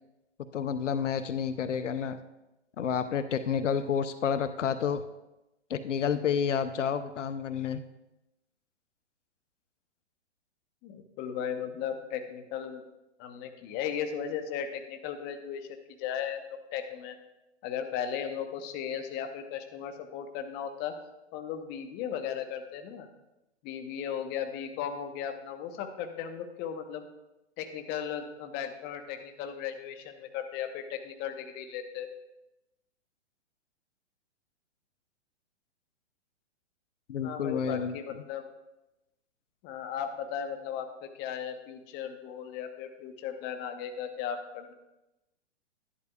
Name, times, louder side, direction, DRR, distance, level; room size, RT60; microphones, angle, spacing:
voice 1, 0.5-2.2 2.8-5.0 5.7-7.8 37.1-37.9, left 7 dB, 80° left, 12 dB, 0.7 m, -30 dB
voice 2, 10.8-12.8 13.2-17.1 17.6-20.9 21.3-23.1 23.6-27.0 27.6-32.1 37.2-38.5 39.6-44.7, left 8 dB, 30° left, 6 dB, 1.1 m, -36 dB
11.5 x 11.0 x 2.4 m, 0.94 s
hypercardioid pair, 125°, 36 cm